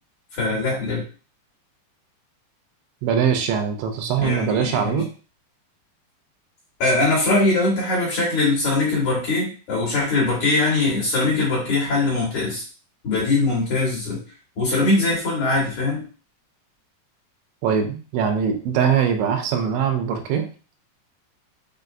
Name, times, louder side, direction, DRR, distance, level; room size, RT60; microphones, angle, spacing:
voice 1, 0.3-1.0 4.2-5.0 6.8-12.6 13.0-14.2 14.6-16.0, left 2 dB, 55° left, -6 dB, 2.3 m, -21 dB
voice 2, 3.0-5.1 17.6-20.5, right 7 dB, 90° right, 6 dB, 2.8 m, -22 dB
6.6 x 2.2 x 2.5 m, 0.37 s
omnidirectional pair, 5.0 m